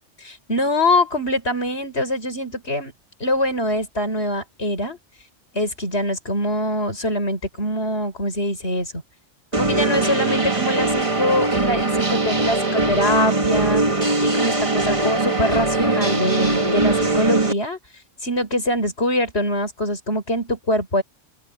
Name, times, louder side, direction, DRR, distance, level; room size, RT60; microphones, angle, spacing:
voice 1, 0.2-2.9 3.2-5.0 5.5-9.0 9.6-17.8 18.2-21.0, left 1 dB, 65° left, 6.7 m, -23 dB
sound 1, 9.5-17.5, right 2 dB, 25° right, 2.0 m, -21 dB
open air
omnidirectional pair, 1.2 m